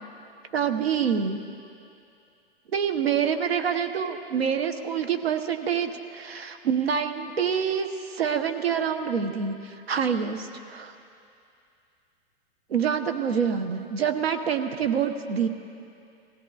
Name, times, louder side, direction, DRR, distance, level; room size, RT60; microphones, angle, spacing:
voice 1, 0.5-1.4 2.7-10.9 12.7-15.5, right 7 dB, 85° right, 7 dB, 0.9 m, -26 dB
19.0 x 16.0 x 2.4 m, 2.6 s
hypercardioid pair, 115°, 30 cm